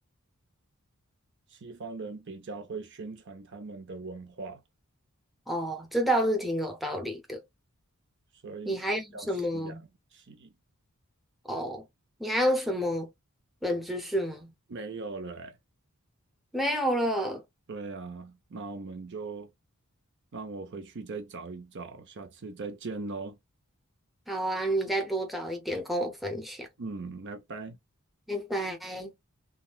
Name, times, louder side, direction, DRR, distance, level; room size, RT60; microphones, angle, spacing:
voice 1, 1.5-4.6 8.4-8.8 9.1-9.8 10.1-10.5 14.7-15.6 17.7-19.5 20.3-23.4 26.8-27.8, right 3 dB, 55° right, 0.6 m, -40 dB
voice 2, 5.5-7.4 8.7-9.8 11.5-11.9 12.2-13.1 13.6-14.5 16.5-17.4 24.3-26.7 28.3-29.1, equal, ahead, 0.7 m, -29 dB
3.6 x 2.2 x 2.3 m
head